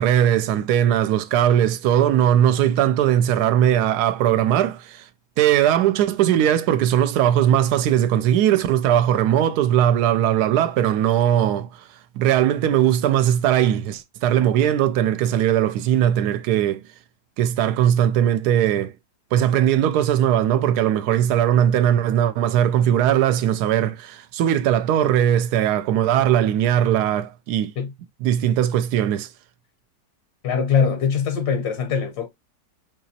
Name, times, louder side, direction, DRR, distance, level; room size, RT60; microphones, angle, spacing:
voice 1, 0.0-5.0 5.4-11.7 12.2-16.8 17.4-18.9 19.3-27.7 28.2-29.3, right 10 dB, 80° right, 1.1 m, -19 dB
voice 2, 30.4-32.3, left 6 dB, 75° left, 1.4 m, -22 dB
5.4 x 2.9 x 2.7 m
omnidirectional pair, 1.7 m